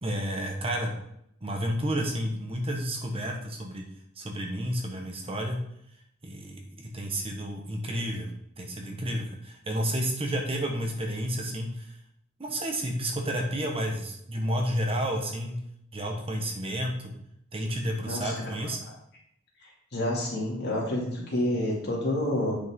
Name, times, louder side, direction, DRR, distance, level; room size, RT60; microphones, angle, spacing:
voice 1, 0.0-0.9 1.4-3.8 4.2-5.6 6.2-8.3 8.6-12.0 12.4-15.6 15.9-17.1 17.5-18.8, equal, 30° right, 2 dB, 1.2 m, -31 dB
voice 2, 18.1-18.5 19.6-22.5, left 1 dB, 55° left, -3 dB, 2.7 m, -29 dB
8.4 x 6.2 x 3.7 m, 0.74 s
head